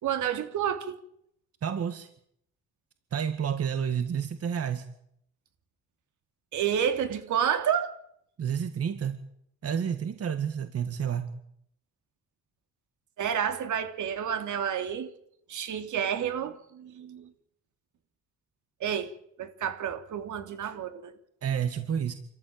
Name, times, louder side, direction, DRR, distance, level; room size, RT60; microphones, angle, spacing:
voice 1, 0.0-1.0 6.5-8.0 13.2-15.1 15.5-17.3 18.8-19.1 19.4-21.1, right 8 dB, 75° right, 8 dB, 3.3 m, -30 dB
voice 2, 1.6-2.1 3.1-4.9 8.4-9.2 9.6-11.4 21.4-22.1, right 8 dB, 50° right, 9 dB, 2.0 m, -30 dB
26.0 x 14.5 x 9.0 m, 0.73 s
cardioid pair, 90°, 30 cm